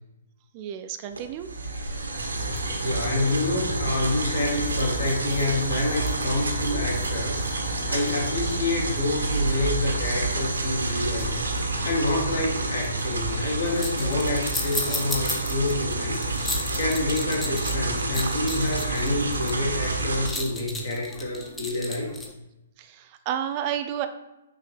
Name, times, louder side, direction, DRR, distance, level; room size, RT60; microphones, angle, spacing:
voice 1, 0.5-1.5 22.8-24.1, right 10 dB, 35° right, 8 dB, 0.3 m, -31 dB
sound 1, 1.1-20.3, right 2 dB, 75° right, 0.8 m, -28 dB
sound 2, 2.4-22.3, left 2 dB, 10° left, 0.6 m, -38 dB
voice 2, 2.8-22.2, left 2 dB, 60° left, 0 dB, 1.4 m, -28 dB
5.8 x 2.7 x 3.4 m, 0.96 s
figure-of-eight pair, 120°, 0 cm